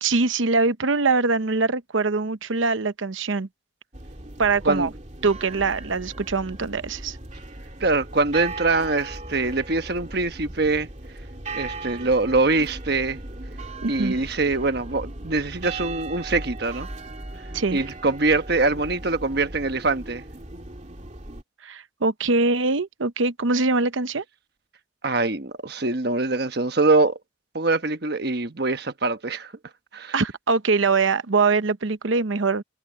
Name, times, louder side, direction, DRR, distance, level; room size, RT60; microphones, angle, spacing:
voice 1, 0.0-3.5 4.4-4.9 5.2-7.2 13.8-14.2 17.5-17.8 21.6-24.2 30.1-32.6, right 3 dB, 75° right, 0.9 m, -23 dB
sound 1, 3.9-21.4, right 2 dB, 35° right, 2.6 m, -38 dB
voice 2, 7.8-10.9 11.5-13.2 13.9-16.9 17.7-20.2 25.0-27.2 27.5-29.5 29.9-30.1, right 3 dB, 55° right, 1.2 m, -23 dB
head